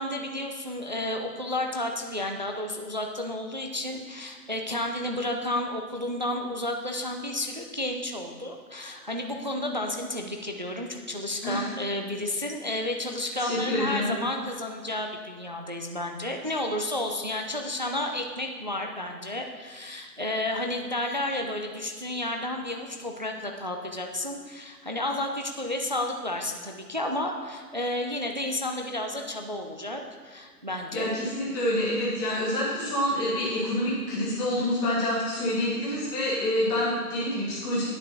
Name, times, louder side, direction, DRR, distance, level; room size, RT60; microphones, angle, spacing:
voice 1, 0.0-31.2, left 1 dB, 30° right, 3 dB, 0.5 m, -31 dB
voice 2, 13.4-14.1 30.9-37.9, left 1 dB, 10° left, -8 dB, 1.6 m, -27 dB
9.9 x 5.8 x 6.5 m, 1.5 s
figure-of-eight pair, 155°, 47 cm